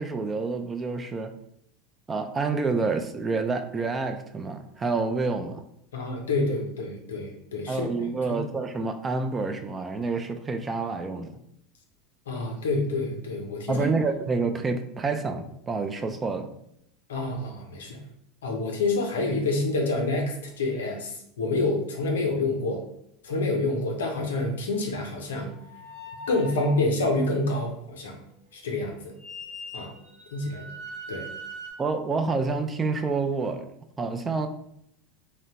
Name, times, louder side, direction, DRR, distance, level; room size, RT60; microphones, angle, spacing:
voice 1, 0.0-1.3 2.1-5.6 7.7-11.4 13.7-16.5 31.8-33.7 34.0-34.5, right 4 dB, 25° right, 7 dB, 0.3 m, -28 dB
voice 2, 5.9-7.9 8.3-8.4 12.3-13.9 17.1-18.0 18.4-22.8 23.2-25.5 26.3-28.2 28.5-29.1 29.7-29.9 30.3-30.7 31.1-31.3, left 2 dB, 80° left, 3 dB, 0.5 m, -27 dB
sound 1, 25.5-26.8 29.2-31.7, equal, 80° right, 0.9 m, -41 dB
2.8 x 2.0 x 2.8 m, 0.74 s
hypercardioid pair, 80°, 0 cm